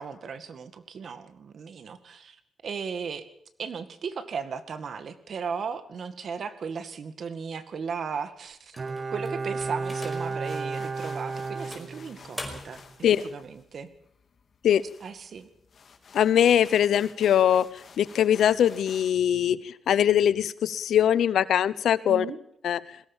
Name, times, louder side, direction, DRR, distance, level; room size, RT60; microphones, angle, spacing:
voice 1, 0.0-3.3 3.6-8.8 9.1-12.8 13.2-13.9 15.0-15.5 22.1-22.4, right 6 dB, 65° right, 10 dB, 2.0 m, -36 dB
sound 1, 8.7-10.5 11.0-11.1 11.7-12.9, left 1 dB, 5° left, 5.2 m, -42 dB
Bowed string instrument, 8.8-12.5 12.8-12.9, right 4 dB, 45° right, 1.0 m, -33 dB
sound 2, 9.6-19.2, left 5 dB, 55° left, 2.7 m, -51 dB
voice 2, 16.1-17.7 18.0-22.3 22.6-22.8, left 10 dB, 90° left, 17 dB, 0.9 m, -22 dB
21.5 x 17.5 x 7.3 m, 0.72 s
cardioid pair, 100°, 0 cm